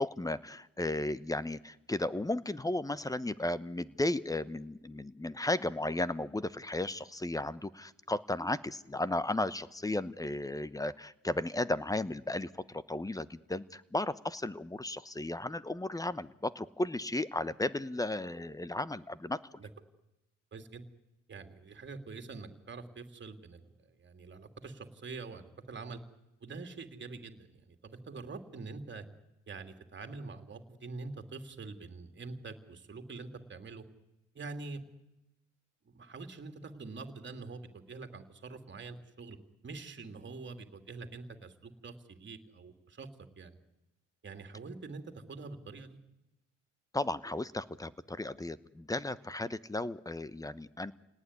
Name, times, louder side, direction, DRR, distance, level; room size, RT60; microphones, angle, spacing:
voice 1, 0.0-19.4 46.9-50.9, left 2 dB, 10° left, 16 dB, 1.0 m, -34 dB
voice 2, 20.5-20.8 21.3-26.0 26.4-29.0 29.5-33.8 34.3-34.8 35.8-39.4 39.6-43.1 43.4-43.6 44.2-45.0 45.3-46.0, right 4 dB, 40° right, 7 dB, 2.8 m, -45 dB
28.0 x 18.5 x 9.8 m, 0.97 s
cardioid pair, 90°, 30 cm